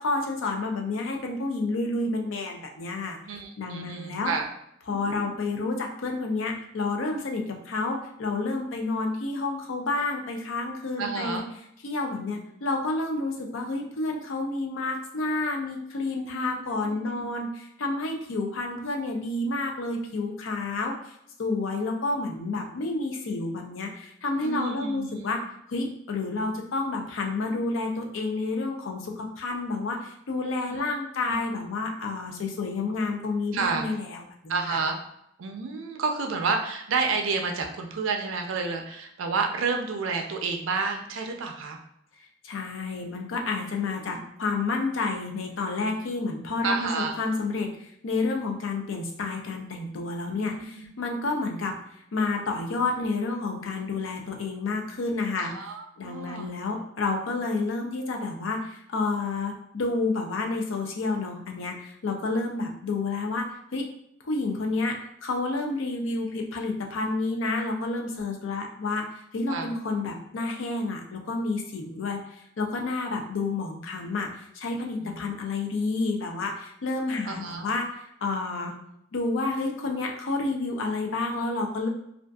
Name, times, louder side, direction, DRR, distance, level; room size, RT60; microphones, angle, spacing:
voice 1, 0.0-4.3 4.9-11.4 11.8-21.1 21.4-34.8 42.4-51.8 52.1-55.5 56.0-63.9 64.2-78.7 79.1-81.9, left 3 dB, 80° left, 2 dB, 0.5 m, -30 dB
voice 2, 3.3-4.4 4.9-5.3 11.0-11.4 16.3-16.5 16.8-17.3 24.4-25.3 30.7-30.9 31.3-31.4 33.5-33.9 34.5-35.0 35.4-41.8 44.0-44.2 46.6-47.1 50.4-50.9 55.4-56.5 69.5-69.7 75.0-75.2 77.3-77.6, right 4 dB, 85° right, 3 dB, 0.4 m, -30 dB
2.5 x 2.4 x 2.2 m, 0.76 s
head